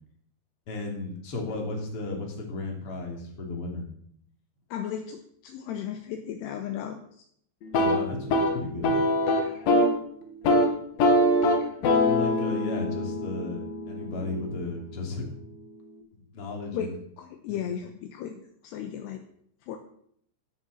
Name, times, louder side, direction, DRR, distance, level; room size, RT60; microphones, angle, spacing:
voice 1, 0.7-3.9 7.7-9.0 12.0-15.3 16.1-17.0 17.5-17.6, left 3 dB, 35° left, 1 dB, 3.3 m, -34 dB
voice 2, 4.7-7.0 9.4-9.5 16.7-16.9 17.2-19.2 19.7-19.8, left 9 dB, 75° left, 5 dB, 2.9 m, -35 dB
sound 1, 7.6-10.0 10.3-10.7 11.0-14.8, left 1 dB, 60° left, 3.3 m, -24 dB
14.0 x 7.1 x 7.7 m, 0.66 s
omnidirectional pair, 5.2 m